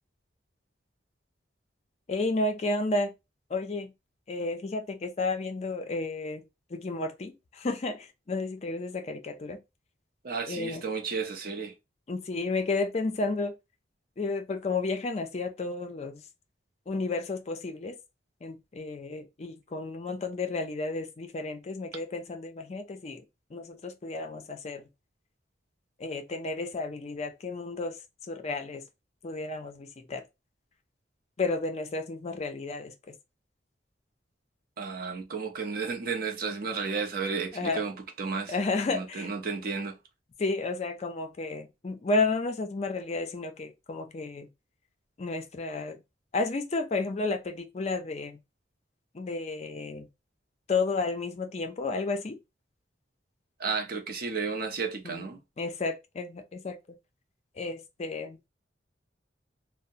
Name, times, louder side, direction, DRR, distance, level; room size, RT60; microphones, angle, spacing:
voice 1, 2.1-3.1 3.5-3.9 4.3-6.4 6.7-9.6 10.5-10.9 12.1-13.5 14.2-16.2 16.9-18.0 18.4-23.2 23.5-24.9 26.0-28.0 28.3-28.8 29.2-30.2 31.4-33.2 37.5-37.8 38.5-39.3 40.4-44.5 45.2-46.0 46.3-48.4 49.1-50.1 50.7-52.4 55.0-55.3 55.6-57.0 57.6-58.4, left 3 dB, 35° left, 0.4 m, -32 dB
voice 2, 10.2-11.7 34.8-38.5 38.9-39.9 53.6-55.4, right 5 dB, 50° right, 0.5 m, -33 dB
2.7 x 2.0 x 2.4 m
head